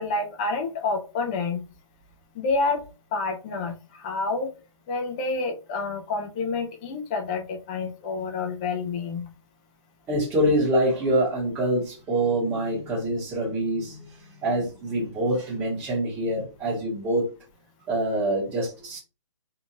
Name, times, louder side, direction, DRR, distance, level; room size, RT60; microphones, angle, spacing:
voice 1, 0.0-1.6 2.4-2.8 3.1-4.5 4.9-9.3, left 3 dB, 15° left, 3 dB, 0.4 m, -28 dB
voice 2, 10.1-14.1 14.4-17.3 17.9-19.0, right 1 dB, 10° right, -8 dB, 0.9 m, -25 dB
2.6 x 2.3 x 2.9 m, 0.33 s
hypercardioid pair, 155°, 17 cm